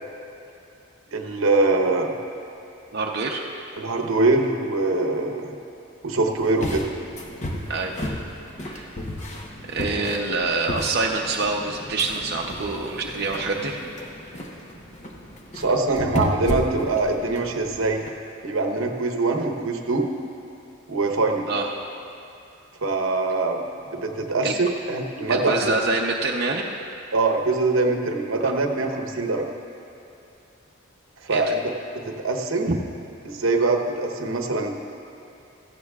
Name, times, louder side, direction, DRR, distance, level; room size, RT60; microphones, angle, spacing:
voice 1, 1.1-2.1 3.8-5.5 6.0-6.9 9.9-10.0 15.5-18.0 18.4-20.1 20.9-21.5 22.8-23.6 23.9-25.6 27.1-29.5 31.3-31.7 32.0-32.7 33.2-34.7, right 3 dB, 80° right, 3 dB, 1.0 m, -23 dB
voice 2, 2.9-3.4 7.7-8.0 8.6-8.9 9.7-13.8 21.5-21.7 24.4-24.5 25.3-26.7 28.4-28.5 31.3-31.4 32.7-32.8, right 3 dB, 50° right, -1 dB, 0.7 m, -26 dB
sound 1, 6.3-18.1, left 1 dB, 35° left, 0.9 m, -33 dB
16.5 x 14.0 x 2.4 m, 2.7 s
head